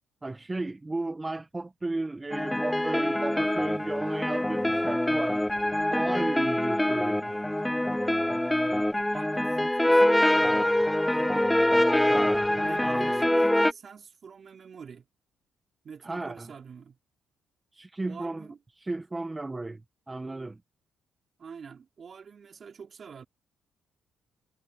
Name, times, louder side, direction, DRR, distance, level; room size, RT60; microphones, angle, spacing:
voice 1, 0.2-5.4 5.9-7.3 12.1-12.5 12.8-13.2 16.0-16.5 17.7-18.5 18.8-19.8 20.1-20.6, right 2 dB, 20° right, 1.0 m, -34 dB
sound 1, 2.3-13.7, left 1 dB, 5° left, 0.5 m, -25 dB
voice 2, 8.7-11.5 12.1-15.1 15.8-17.0 18.1-18.6 21.4-23.3, right 6 dB, 45° right, 3.1 m, -46 dB
cardioid pair, 90°, 0 cm